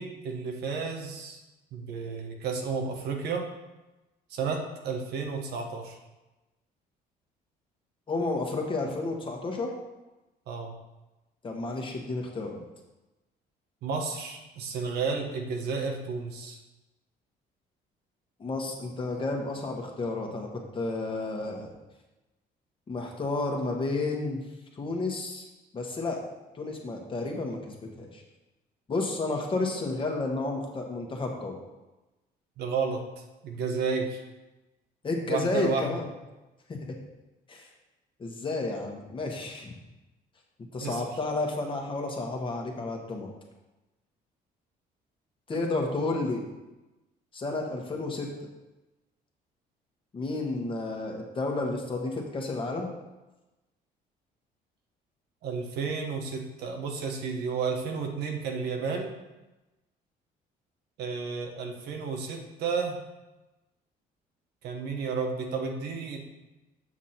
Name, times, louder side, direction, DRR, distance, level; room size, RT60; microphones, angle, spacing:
voice 1, 0.0-1.4 1.7-3.5 4.3-6.0 10.5-10.8 13.8-16.6 32.6-33.0 33.4-34.2 35.3-35.9 40.8-41.0 55.4-59.2 61.0-63.0 64.6-66.2, right 5 dB, 75° right, 2 dB, 1.3 m, -32 dB
voice 2, 8.1-9.7 11.4-12.6 18.4-21.7 22.9-24.4 24.8-25.5 25.7-26.2 26.5-28.2 28.9-31.6 35.0-36.1 36.7-36.8 37.5-37.7 38.2-39.7 40.7-43.3 45.5-46.4 47.3-48.3 50.1-52.9, left 2 dB, 30° left, 1 dB, 1.5 m, -31 dB
7.5 x 6.1 x 4.3 m, 1.1 s
cardioid pair, 110°, 17 cm